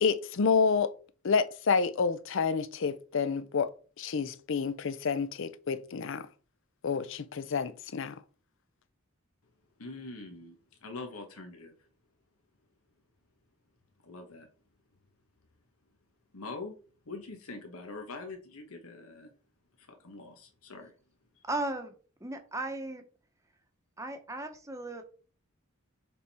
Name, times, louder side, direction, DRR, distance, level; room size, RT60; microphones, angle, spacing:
voice 1, 0.0-0.9 1.2-3.7 4.0-6.2 6.8-8.1, left 5 dB, 60° left, 0.5 m, -29 dB
voice 2, 9.8-11.9 14.0-14.5 16.3-16.7 17.0-19.3 19.8-20.9 21.3-21.5, left 3 dB, 90° left, 1.2 m, -44 dB
voice 3, 21.5-21.9 22.2-23.0 24.0-25.0, right 2 dB, 15° right, 0.9 m, -36 dB
6.7 x 3.6 x 4.2 m
head